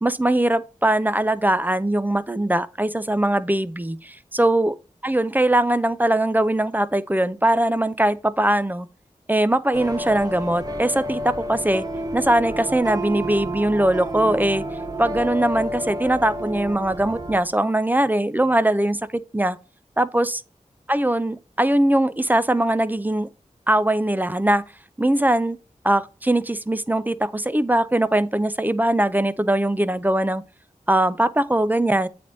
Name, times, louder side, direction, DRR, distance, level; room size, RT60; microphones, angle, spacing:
voice 1, 0.0-4.7 5.0-8.9 9.3-11.8 12.1-14.6 15.0-19.6 20.0-20.4 20.9-23.3 23.7-24.6 25.0-25.6 25.8-30.4 30.9-32.1, right 1 dB, 15° right, 0.5 m, -21 dB
sound 1, 9.7-17.4, right 1 dB, 30° right, 0.8 m, -30 dB
8.3 x 3.4 x 4.0 m
wide cardioid pair, 50°, 14 cm